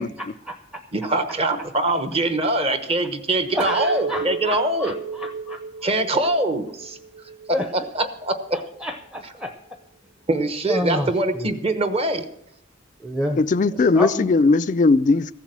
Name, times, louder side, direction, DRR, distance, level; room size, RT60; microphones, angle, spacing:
voice 1, 0.0-0.8 3.5-5.6 7.5-7.7 8.5-9.6 10.7-11.5 13.0-13.4 13.8-14.3, left 1 dB, 5° right, 0.6 m, -29 dB
voice 2, 0.9-5.0 5.8-7.0 7.5-8.6 10.3-12.3, right 2 dB, 30° right, 1.0 m, -23 dB
Chink clink, 3.6-7.9 8.3-8.9, right 5 dB, 80° right, 1.2 m, -34 dB
voice 3, 13.3-15.3, left 3 dB, 40° left, 0.4 m, -18 dB
15.0 x 7.3 x 7.5 m
head